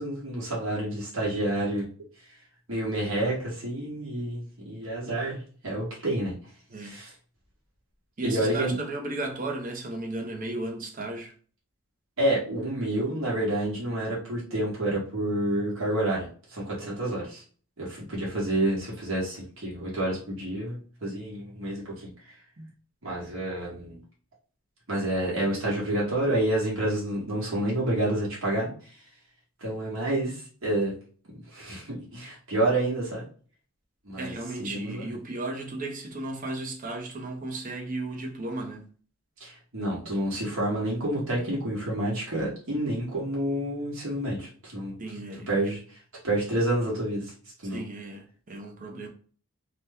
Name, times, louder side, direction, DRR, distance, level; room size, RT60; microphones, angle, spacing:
voice 1, 0.0-1.9 2.7-6.3 6.8-7.1 8.2-8.7 12.2-17.4 17.8-22.3 23.0-24.0 24.9-28.9 29.6-30.9 31.5-33.2 34.0-34.3 34.6-35.1 39.4-45.0 45.5-46.0 46.2-47.3 47.6-47.8, right 1 dB, 60° right, 1.1 m, -29 dB
voice 2, 8.2-11.3 16.8-17.0 22.6-22.7 34.2-38.8 45.0-45.7 47.6-49.1, right 2 dB, 35° right, 0.6 m, -35 dB
2.8 x 2.1 x 3.4 m
head